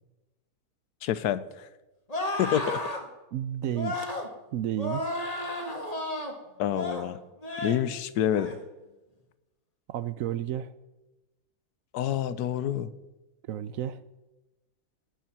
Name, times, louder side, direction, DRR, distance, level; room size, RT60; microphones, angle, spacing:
voice 1, 1.0-1.7 2.4-2.8 6.6-7.2 7.6-8.6 11.9-12.9, left 10 dB, 90° left, 15 dB, 1.2 m, -28 dB
sound 1, 2.1-3.0 3.7-4.3 4.8-6.3 6.7-7.1 7.4-7.8 8.3-8.6, left 1 dB, 25° left, 1.7 m, -32 dB
voice 2, 3.3-4.2 4.5-5.0 9.9-10.7 13.5-14.0, right 11 dB, 70° right, 15 dB, 0.9 m, -32 dB
18.5 x 7.1 x 6.0 m, 1.1 s
omnidirectional pair, 1.6 m